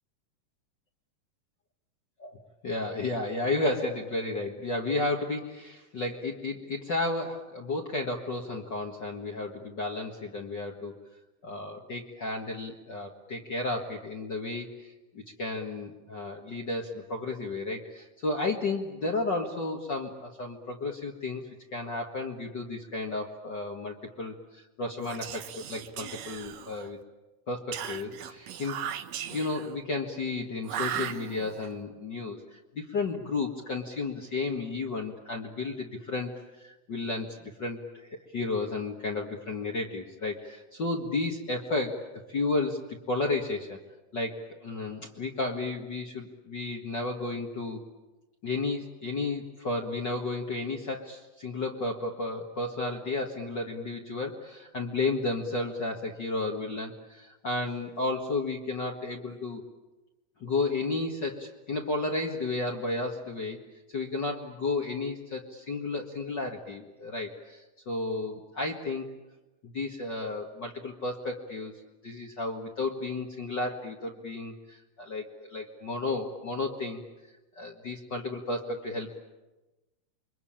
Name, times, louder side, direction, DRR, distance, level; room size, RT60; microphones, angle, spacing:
voice 1, 2.6-10.9 11.4-21.4 21.7-27.0 27.5-28.8 29.3-42.0 42.3-43.8 44.1-47.8 48.4-59.6 60.4-63.6 63.9-69.1 69.6-71.7 72.0-77.0 77.6-79.1, left 3 dB, 40° left, 0 dB, 2.0 m, -33 dB
Whispering, 25.0-27.0 27.7-29.8 30.6-31.7, right 9 dB, 65° right, 2.1 m, -37 dB
28.5 x 23.5 x 8.8 m, 1.1 s
omnidirectional pair, 3.7 m